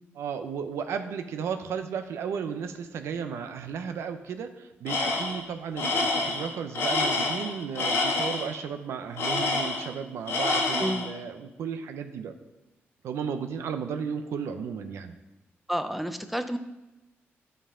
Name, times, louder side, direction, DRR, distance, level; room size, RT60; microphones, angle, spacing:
voice 1, 0.2-12.3 13.0-15.1, right 6 dB, 90° right, 7 dB, 0.6 m, -34 dB
Tools, 4.9-5.4 5.8-8.5 9.2-10.0 10.3-11.1, left 3 dB, 75° left, 1.3 m, -27 dB
voice 2, 15.7-16.6, equal, ahead, 9 dB, 0.5 m, -30 dB
11.0 x 5.4 x 3.7 m, 1.0 s
cardioid pair, 120°, 5 cm